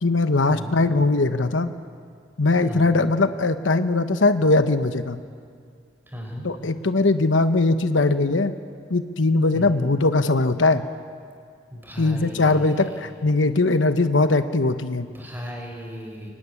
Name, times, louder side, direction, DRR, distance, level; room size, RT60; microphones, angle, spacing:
voice 1, 0.0-1.7 2.4-5.2 6.4-8.5 8.9-10.8 12.0-15.1, left 3 dB, 85° left, 10 dB, 1.0 m, -20 dB
voice 2, 2.6-3.0 6.1-6.5 9.5-9.8 11.7-12.9 15.0-16.3, equal, 10° right, 1 dB, 4.6 m, -36 dB
24.0 x 18.0 x 9.8 m, 2.2 s
head